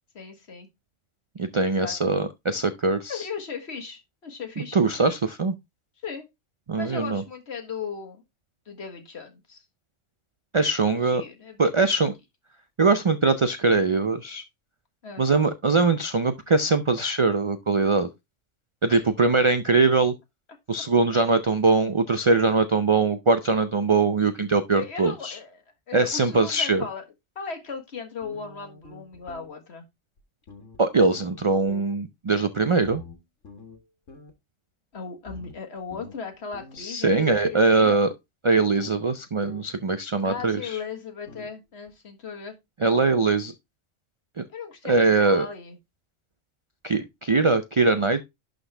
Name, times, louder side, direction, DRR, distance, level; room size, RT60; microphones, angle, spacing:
voice 1, 0.1-0.7 1.6-2.1 3.1-4.8 6.0-6.2 6.8-8.2 8.7-9.6 10.8-11.6 15.0-15.3 18.9-19.0 24.7-25.6 25.9-27.0 27.3-29.8 34.9-38.0 40.2-42.6 44.5-45.8, left 5 dB, 60° left, 1.7 m, -37 dB
voice 2, 1.4-3.3 4.7-5.5 6.7-7.2 10.5-11.2 11.6-12.1 12.8-14.4 15.2-18.1 18.8-20.1 20.7-25.4 25.9-26.9 30.8-33.0 36.8-38.1 38.4-40.8 42.8-43.5 44.4-44.5 44.8-45.5 46.8-48.2, right 3 dB, 50° right, 0.3 m, -22 dB
sound 1, 28.2-29.5 30.2-30.3 30.5-30.8 31.1-32.0 32.8-33.8 34.1-34.3 35.3-36.8 37.1-37.4 38.7-39.0 39.4-39.6 40.4-40.7 41.3-41.5 41.9-42.0 43.1-43.2, left 3 dB, 90° left, 1.7 m, -45 dB
11.5 x 3.9 x 3.3 m
omnidirectional pair, 1.3 m